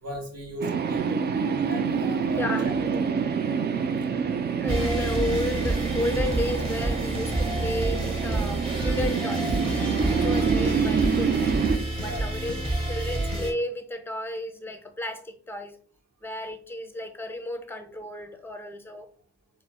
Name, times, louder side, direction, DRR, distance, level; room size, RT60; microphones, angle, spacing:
voice 1, 0.0-1.2 1.7-3.0 12.0-12.3, right 1 dB, 55° right, 1.1 m, -37 dB
sound 1, 0.6-11.8, right 6 dB, 35° right, 0.4 m, -27 dB
voice 2, 2.4-2.7 4.1-9.6 10.1-11.4 11.7-12.5 12.9-15.8 16.2-19.1, left 1 dB, 5° left, 0.6 m, -33 dB
sound 2, 4.7-13.5, right 1 dB, 20° right, 1.1 m, -29 dB
4.2 x 2.0 x 2.2 m
supercardioid pair, 55°, 30 cm